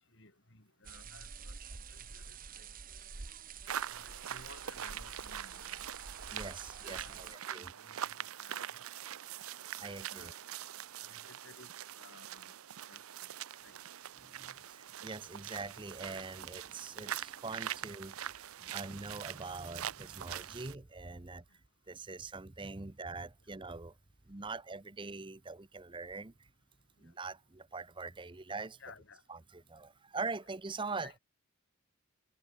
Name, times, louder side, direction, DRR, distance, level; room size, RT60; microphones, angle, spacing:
voice 1, 0.1-1.6 1.9-2.7 3.9-5.8 6.5-8.7 9.8-10.6 11.1-11.7 12.0-13.3 13.6-13.8 24.4-24.6 28.8-29.2 31.0-31.2, left 3 dB, 55° left, 6.8 m, -58 dB
sound 1, 0.8-7.4, right 6 dB, 40° right, 1.1 m, -48 dB
sound 2, 3.7-20.7, right 10 dB, 80° right, 0.6 m, -43 dB
voice 2, 5.7-7.7 9.8-10.3 14.2-21.4 21.9-23.9 24.3-26.5 27.0-28.8 29.3-31.1, right 3 dB, 25° right, 0.8 m, -43 dB
head